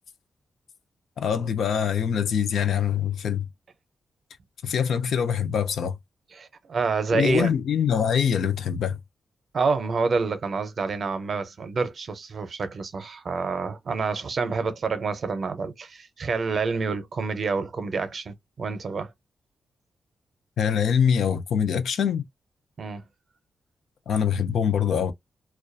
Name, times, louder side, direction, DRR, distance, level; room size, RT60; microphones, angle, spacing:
voice 1, 1.2-3.5 4.6-6.0 7.1-9.0 20.6-22.2 24.1-25.1, left 8 dB, 80° left, 0.5 m, -24 dB
voice 2, 6.4-7.5 9.5-19.1 22.8-23.0, right 4 dB, 45° right, 0.5 m, -28 dB
2.3 x 2.2 x 2.5 m
wide cardioid pair, 170°, 0 cm